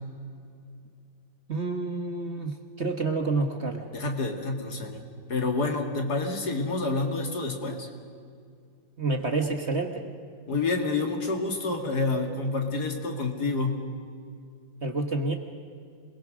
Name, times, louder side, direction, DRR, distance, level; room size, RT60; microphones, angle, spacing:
voice 1, 1.5-3.9 9.0-10.1 14.8-15.3, right 3 dB, 40° right, 5 dB, 1.5 m, -28 dB
voice 2, 3.9-5.0 5.3-7.9 10.5-13.9, left 3 dB, 55° left, 3 dB, 2.7 m, -28 dB
27.0 x 21.0 x 6.3 m, 2.3 s
omnidirectional pair, 2.0 m